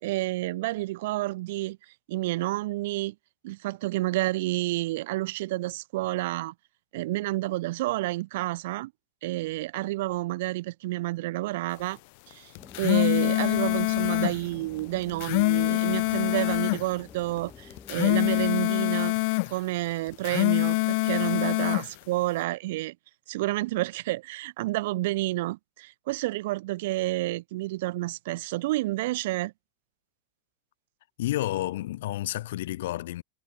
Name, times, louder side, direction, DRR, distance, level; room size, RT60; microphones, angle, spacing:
voice 1, 0.0-1.8 2.1-3.1 3.4-6.5 6.9-8.9 9.2-12.0 12.3-12.5 12.8-19.1 19.5-22.9 23.3-29.5, right 18 dB, 65° right, 0.9 m, -30 dB
sound 1, 12.5-14.4 15.0-16.8 17.7-19.5 20.1-21.9, left 28 dB, 55° left, 0.5 m, -25 dB
sound 2, 12.6-18.5, left 5 dB, 15° left, 3.5 m, -49 dB
voice 2, 31.2-33.2, left 15 dB, 80° left, 1.5 m, -30 dB
supercardioid pair, 160°, 0 cm